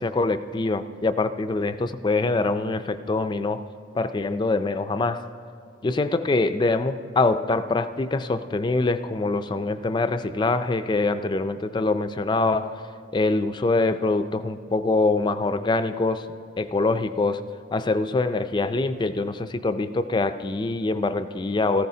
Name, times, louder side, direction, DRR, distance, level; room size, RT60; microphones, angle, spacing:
voice 1, 0.0-3.6 3.9-5.2 5.8-12.8 13.1-16.3 16.6-17.4 17.7-21.9, left 3 dB, 25° left, 11 dB, 0.3 m, -24 dB
17.5 x 14.5 x 2.8 m, 2.3 s
head